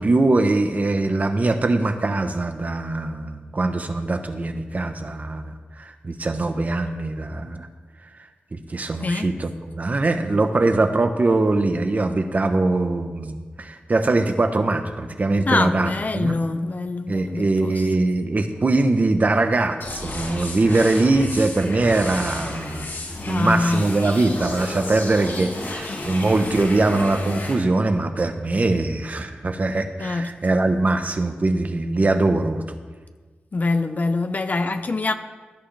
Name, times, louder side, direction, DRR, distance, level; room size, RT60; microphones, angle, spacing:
voice 1, 0.0-7.7 8.5-16.3 17.1-22.9 23.2-32.8, right 2 dB, 45° right, 1.1 m, -22 dB
voice 2, 9.0-9.3 15.5-17.9 23.2-23.9 30.0-30.3 33.5-35.1, left 3 dB, 45° left, 0.7 m, -24 dB
sound 1, 19.8-27.5, left 2 dB, 80° left, 5.0 m, -32 dB
17.5 x 11.0 x 3.5 m
wide cardioid pair, 90°, 4 cm